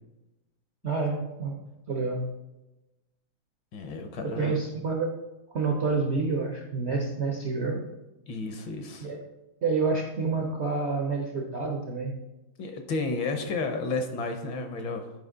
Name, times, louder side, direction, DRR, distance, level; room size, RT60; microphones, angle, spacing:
voice 1, 0.8-2.3 4.2-5.1 5.5-7.8 9.0-9.2 9.6-12.2, right 4 dB, 65° right, 1 dB, 0.6 m, -28 dB
voice 2, 3.7-4.6 8.3-9.1 12.6-15.1, left 3 dB, 70° left, 5 dB, 1.5 m, -32 dB
8.0 x 5.1 x 3.7 m, 1.0 s
omnidirectional pair, 2.3 m